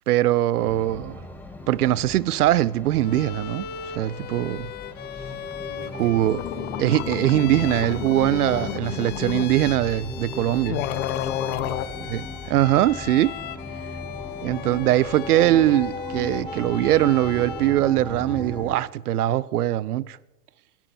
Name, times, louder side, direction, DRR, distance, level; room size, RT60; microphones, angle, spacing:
voice 1, 0.1-1.3 1.7-3.7 3.9-4.7 5.9-6.4 6.8-10.8 12.1-13.4 14.4-20.2, right 14 dB, 75° right, 0.7 m, -22 dB
sound 1, 0.6-18.8, left 2 dB, 5° left, 1.5 m, -37 dB
Bowed string instrument, 3.0-17.9, left 9 dB, 20° left, 0.6 m, -38 dB
voice 2, 5.7-6.7 8.5-9.0 11.4-12.1, right 5 dB, 60° right, 3.4 m, -45 dB
sound 2, 6.0-6.1 6.3-9.5 10.3-10.4 10.7-11.9, left 12 dB, 55° left, 1.3 m, -30 dB
25.5 x 10.5 x 4.3 m
hypercardioid pair, 110°, 46 cm